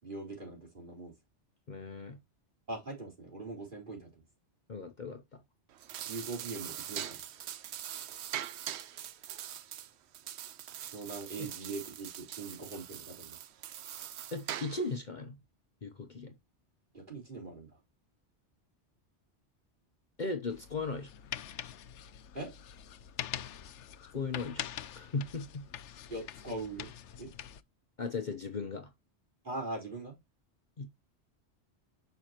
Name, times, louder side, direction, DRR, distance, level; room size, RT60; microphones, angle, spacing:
voice 1, 0.0-1.1 2.7-4.2 6.1-7.2 10.8-13.4 16.9-17.7 22.3-22.5 26.1-26.9 27.2-27.3 29.4-30.2, right 2 dB, 45° right, 4.5 m, -41 dB
voice 2, 1.7-2.2 4.7-5.4 14.3-15.4 15.8-16.3 20.2-21.1 24.1-25.6 28.0-28.9 30.8-30.9, left 3 dB, 45° left, 1.0 m, -37 dB
sound 1, 5.7-15.0, right 11 dB, 70° right, 0.9 m, -42 dB
sound 2, 20.5-27.6, left 10 dB, 80° left, 1.0 m, -44 dB
9.5 x 6.0 x 2.9 m
omnidirectional pair, 1.2 m